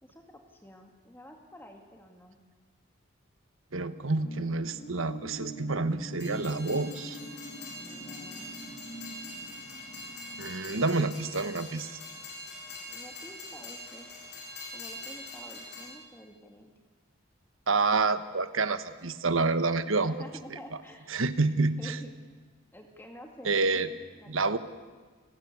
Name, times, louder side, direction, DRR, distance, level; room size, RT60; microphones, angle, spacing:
voice 1, 0.0-2.4 7.8-8.5 10.8-10.9 12.9-14.1 14.7-16.7 20.0-21.1 21.8-22.1 22.7-24.6, equal, 10° left, 3 dB, 2.2 m, -49 dB
voice 2, 3.7-7.2 10.4-11.9 17.7-20.1 21.1-22.0 23.4-23.9 24.3-24.6, right 3 dB, 85° right, 11 dB, 1.4 m, -28 dB
sound 1, 4.0-11.8 12.2-12.3, equal, 35° left, 2.7 m, -46 dB
Train, 6.1-15.9, left 2 dB, 55° left, 7.1 m, -44 dB
29.5 x 19.0 x 8.5 m, 1.4 s
head